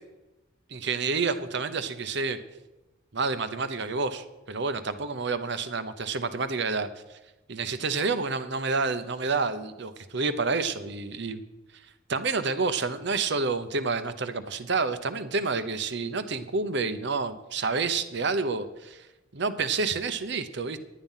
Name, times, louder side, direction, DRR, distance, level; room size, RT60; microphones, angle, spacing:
voice 1, 0.7-2.4 3.1-7.2 7.5-11.4 12.1-19.1 19.3-20.8, right 4 dB, 60° right, 11 dB, 0.8 m, -29 dB
11.5 x 9.1 x 5.6 m, 1.0 s
head